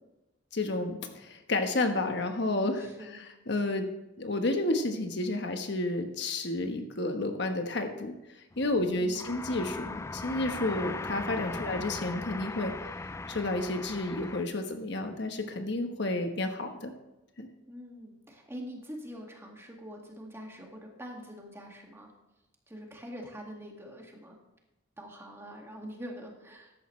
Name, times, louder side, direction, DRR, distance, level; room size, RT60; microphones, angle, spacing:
voice 1, 0.5-2.9 3.5-3.9 4.2-8.1 8.6-12.7 13.3-16.9 17.4-17.5, left 2 dB, 65° left, 5 dB, 1.2 m, -31 dB
voice 2, 2.8-3.2 8.7-9.2 11.5-11.7 17.7-22.1 22.7-24.4 25.0-26.8, equal, 15° right, 0 dB, 2.0 m, -44 dB
sound 1, 8.5-14.4, left 3 dB, 15° left, 0.3 m, -39 dB
14.5 x 10.5 x 3.2 m, 0.95 s
head